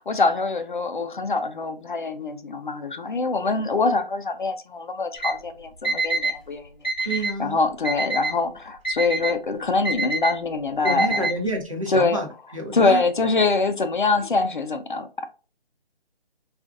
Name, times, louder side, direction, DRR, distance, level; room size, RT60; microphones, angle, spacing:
voice 1, 0.0-6.6 7.4-11.3 11.9-12.2 12.7-15.1, left 3 dB, 55° left, 0.5 m, -24 dB
Alarm, 5.2-5.3 5.8-6.3 6.8-7.3 7.8-8.3 8.8-9.3 9.8-10.3 10.8-11.3, right 2 dB, 10° left, 1.0 m, -25 dB
voice 2, 7.0-7.6 10.8-13.0, right 1 dB, 35° right, 0.6 m, -29 dB
3.8 x 2.4 x 2.3 m
hypercardioid pair, 180°, 30 cm